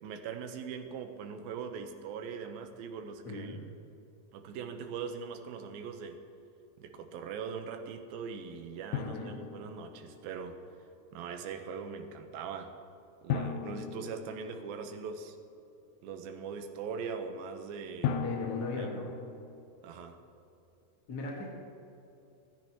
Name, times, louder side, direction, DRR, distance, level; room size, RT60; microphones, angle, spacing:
voice 1, 0.0-3.6 4.3-6.2 6.8-10.6 11.1-12.7 13.2-15.4 16.0-18.2 18.8-19.0 19.8-20.2, right 6 dB, 75° right, 6 dB, 2.7 m, -41 dB
voice 2, 3.2-3.6 9.0-9.4 18.2-19.1 21.1-21.5, left 3 dB, 40° left, -3 dB, 1.5 m, -38 dB
Drum, 8.9-10.4 13.3-15.1 18.0-19.6, left 7 dB, 75° left, 1.7 m, -37 dB
27.0 x 10.5 x 3.0 m, 2.9 s
omnidirectional pair, 4.4 m